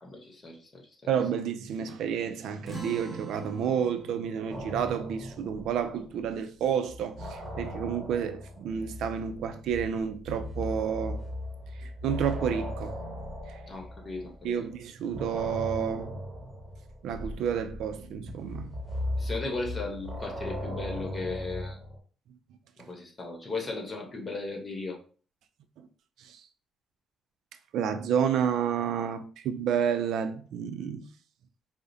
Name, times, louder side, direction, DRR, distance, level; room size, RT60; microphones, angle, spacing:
voice 1, 0.0-1.1 13.7-14.7 19.2-21.8 22.9-25.0, left 3 dB, 35° left, 1.1 m, -36 dB
voice 2, 1.1-11.2 11.8-13.0 14.4-16.2 17.0-18.7 25.8-25.9 26.2-26.4 27.7-31.1, right 8 dB, 80° right, 0.4 m, -30 dB
sound 1, 2.6-7.7, right 2 dB, 10° right, 1.4 m, -46 dB
sound 2, 4.5-6.4 6.6-14.6 15.1-22.0, left 1 dB, 25° right, 1.1 m, -38 dB
4.7 x 2.1 x 2.7 m
cardioid pair, 90°, 0 cm